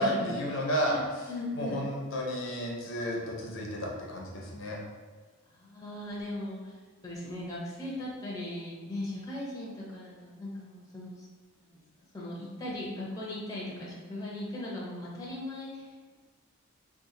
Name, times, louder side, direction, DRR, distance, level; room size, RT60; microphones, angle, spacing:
voice 1, 0.0-1.2 1.5-4.8, equal, 60° left, -2 dB, 0.6 m, -32 dB
voice 2, 0.7-1.8 5.5-6.7 7.0-11.1 11.6-11.7 12.1-16.2, left 1 dB, 15° left, -6 dB, 0.6 m, -38 dB
2.9 x 2.5 x 3.7 m, 1.4 s
head